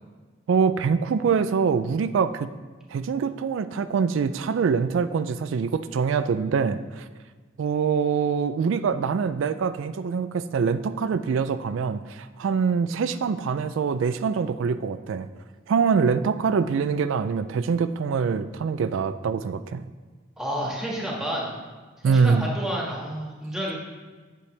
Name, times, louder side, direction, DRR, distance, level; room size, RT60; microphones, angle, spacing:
voice 1, 0.5-2.5 2.9-7.1 7.6-15.3 15.7-19.8 22.0-22.5, right 5 dB, 75° right, 12 dB, 0.3 m, -24 dB
voice 2, 20.4-21.5 22.0-23.7, equal, 5° right, -4 dB, 1.6 m, -30 dB
8.5 x 8.2 x 3.3 m, 1.4 s
head